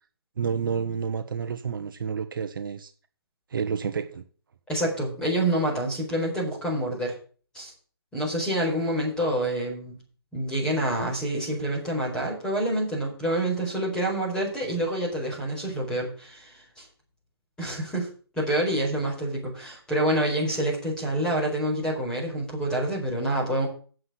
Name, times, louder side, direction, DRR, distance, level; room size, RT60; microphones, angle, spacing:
voice 1, 0.4-2.9 3.5-4.2, right 6 dB, 55° right, 9 dB, 1.0 m, -29 dB
voice 2, 4.7-7.2 7.5-7.7 8.1-10.0 10.3-16.9 17.6-18.1 18.3-23.7, right 1 dB, 5° left, -3 dB, 4.5 m, -27 dB
7.8 x 7.7 x 7.9 m, 0.41 s
hypercardioid pair, 150°, 13 cm